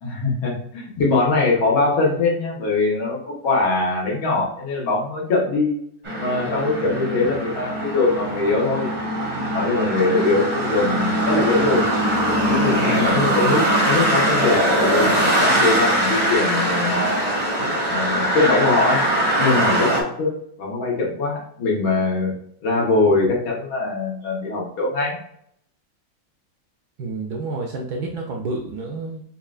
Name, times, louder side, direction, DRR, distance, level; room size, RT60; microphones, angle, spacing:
voice 1, 0.0-5.7 6.2-8.9 9.5-11.9 12.5-17.3 17.9-19.0 19.4-20.3 20.6-22.3 22.6-25.2, left 3 dB, 85° left, -3 dB, 2.0 m, -22 dB
sound 1, 6.0-20.0, right 1 dB, 40° right, 0.6 m, -21 dB
voice 2, 27.0-29.2, right 3 dB, 70° right, 1 dB, 0.9 m, -29 dB
5.6 x 2.4 x 2.4 m, 0.67 s
omnidirectional pair, 2.1 m